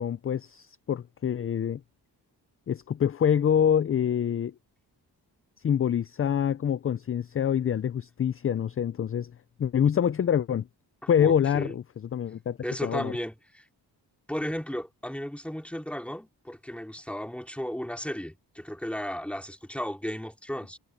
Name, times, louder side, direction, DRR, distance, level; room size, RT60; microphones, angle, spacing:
voice 1, 0.0-1.8 2.7-4.5 5.6-9.3 9.6-10.7 11.1-11.8 12.1-13.1, left 8 dB, 35° left, 0.4 m, -26 dB
voice 2, 11.0-11.7 12.6-13.7 14.3-20.8, equal, 5° left, 3.0 m, -35 dB
wide cardioid pair, 145°, 39 cm